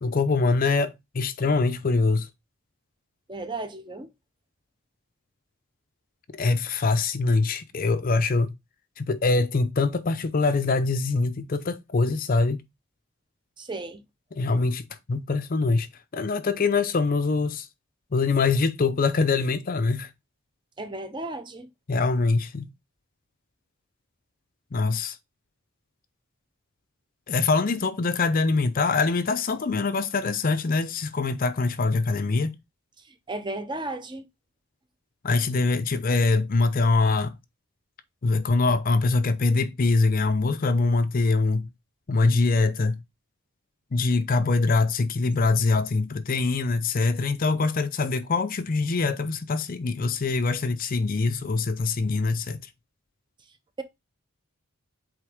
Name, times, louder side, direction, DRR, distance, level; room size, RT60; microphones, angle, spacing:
voice 1, 0.0-2.3 6.3-8.5 9.0-12.6 14.4-17.7 18.1-20.1 21.9-22.7 24.7-25.2 27.3-32.6 35.2-37.4 38.2-41.7 42.1-43.0 43.9-52.6, left 3 dB, 40° left, 0.5 m, -24 dB
voice 2, 3.3-4.1 13.6-14.0 20.8-21.7 33.0-34.3 53.8-53.9, right 2 dB, 20° right, 0.7 m, -34 dB
8.1 x 3.5 x 3.5 m
head